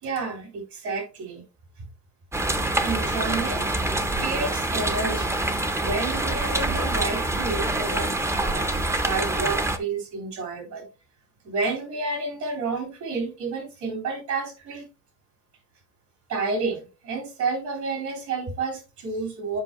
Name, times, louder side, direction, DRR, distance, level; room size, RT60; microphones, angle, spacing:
voice 1, 0.0-1.5 2.8-5.4 5.8-8.1 8.4-10.8 11.4-14.8 16.3-19.6, right 4 dB, 75° right, 2 dB, 4.0 m, -30 dB
sound 1, 2.3-9.8, right 2 dB, 10° right, 0.5 m, -26 dB
7.5 x 5.4 x 2.9 m, 0.31 s
cardioid pair, 155°, 29 cm